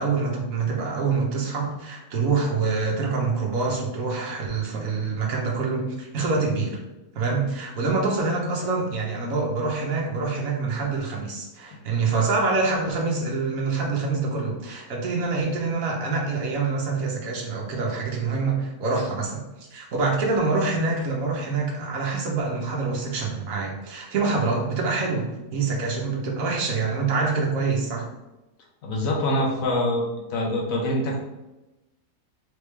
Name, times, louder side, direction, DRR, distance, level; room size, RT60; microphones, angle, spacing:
voice 1, 0.0-6.8 7.1-28.1, right 4 dB, 75° right, -1 dB, 1.3 m, -26 dB
voice 2, 28.8-30.0 30.3-31.2, left 1 dB, 75° left, -2 dB, 1.3 m, -24 dB
3.9 x 3.5 x 3.2 m, 1.0 s
omnidirectional pair, 1.5 m